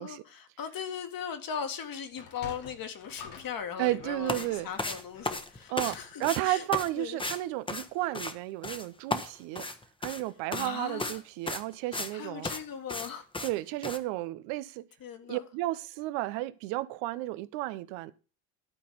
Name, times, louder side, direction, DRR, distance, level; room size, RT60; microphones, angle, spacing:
voice 1, 0.0-6.6 7.0-7.2 10.5-11.2 12.1-13.3 15.0-15.5, left 7 dB, 45° left, 1.9 m, -39 dB
Sliding door, 2.1-6.7, left 6 dB, 85° left, 1.9 m, -49 dB
voice 2, 3.8-4.7 5.7-9.6 10.0-12.5 13.4-14.9 15.3-18.1, right 17 dB, 75° right, 0.9 m, -33 dB
sound 1, 4.3-4.5 4.8-6.0 6.2-6.4 6.7-6.9 7.2-7.4 7.7-8.3 8.6-8.9 9.1-10.2 10.5-10.7 11.0-11.2 11.5-12.1 12.4-12.6 12.9-13.1 13.3-13.5 13.8-14.0, left 2 dB, 10° left, 1.1 m, -34 dB
12.5 x 4.2 x 6.8 m
supercardioid pair, 75°, 47 cm